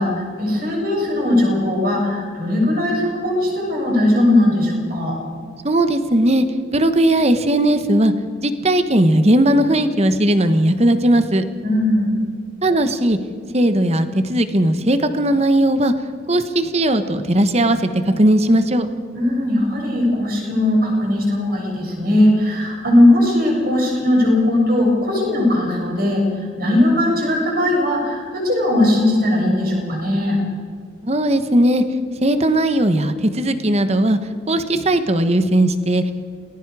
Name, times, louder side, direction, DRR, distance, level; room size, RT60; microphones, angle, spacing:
voice 1, 0.0-5.2 11.6-12.2 19.1-30.4, left 1 dB, 50° right, -1 dB, 7.2 m, -18 dB
voice 2, 5.6-6.4 6.7-8.1 8.4-11.4 12.6-13.2 13.5-15.9 16.3-18.9 31.0-31.8 32.2-34.2 34.5-36.0, right 1 dB, 35° right, 10 dB, 1.2 m, -17 dB
28.5 x 20.0 x 4.9 m, 2.1 s
head